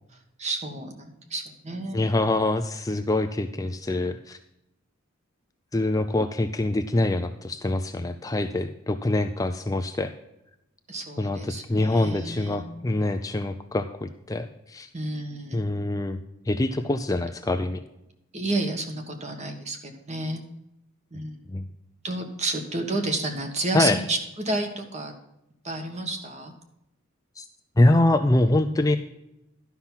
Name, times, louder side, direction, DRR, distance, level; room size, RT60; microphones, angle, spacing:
voice 1, 0.4-2.2 10.9-12.7 14.9-15.7 18.3-20.4 21.1-21.5 22.0-25.1 25.6-26.5, right 2 dB, 35° right, 4 dB, 1.5 m, -31 dB
voice 2, 1.9-4.4 5.7-10.1 11.2-14.9 15.5-16.2 16.5-17.8 21.5-21.7 23.7-24.0 27.4-27.5 27.8-29.0, left 2 dB, 15° left, 7 dB, 0.4 m, -24 dB
11.5 x 5.9 x 5.6 m, 0.86 s
head